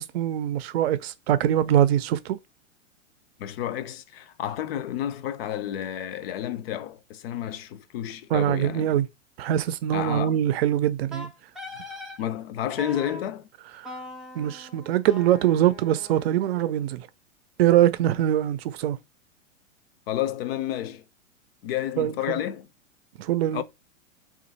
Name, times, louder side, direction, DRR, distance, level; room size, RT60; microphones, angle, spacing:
voice 1, 0.0-2.4 8.3-9.1 9.4-11.3 13.8-13.9 14.4-17.1 17.6-19.0 22.0-22.4 23.2-23.6, right 11 dB, 50° right, 0.6 m, -23 dB
voice 2, 3.4-8.9 9.9-10.4 12.2-13.5 20.1-21.0 21.6-22.7 23.5-23.6, left 11 dB, 50° left, 0.5 m, -31 dB
Wind instrument woodwind instrument, 11.1-12.2 12.8-13.2 13.8-16.8, equal, ahead, 0.4 m, -41 dB
3.0 x 2.5 x 4.1 m
hypercardioid pair, 115°, 39 cm